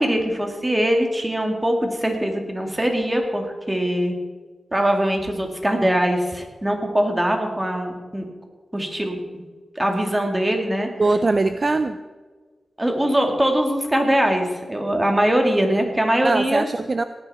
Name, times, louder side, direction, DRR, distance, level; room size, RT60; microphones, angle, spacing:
voice 1, 0.0-4.2 4.7-8.2 8.7-9.4 9.8-10.9 12.8-16.6, right 1 dB, 15° right, 3 dB, 2.4 m, -22 dB
voice 2, 11.0-12.0 16.2-17.0, right 3 dB, 45° right, 11 dB, 0.5 m, -21 dB
17.5 x 9.9 x 4.3 m, 1.4 s
cardioid pair, 70°, 0 cm